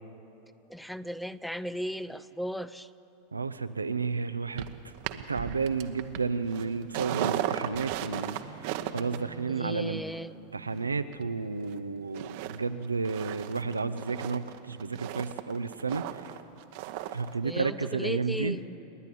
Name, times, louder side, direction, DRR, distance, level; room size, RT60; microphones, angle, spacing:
voice 1, 0.7-2.9 9.5-10.3 17.4-18.6, equal, 5° left, 16 dB, 0.6 m, -36 dB
voice 2, 3.3-4.7 5.1-8.4 8.7-10.0 10.5-16.0 17.1-18.6, right 4 dB, 90° right, 11 dB, 0.6 m, -32 dB
sound 1, 4.6-11.8 12.1-12.6 12.8-17.3 17.6-17.7, right 12 dB, 55° right, 1.0 m, -37 dB
29.5 x 10.5 x 8.4 m, 3.0 s
figure-of-eight pair, 85°, 0 cm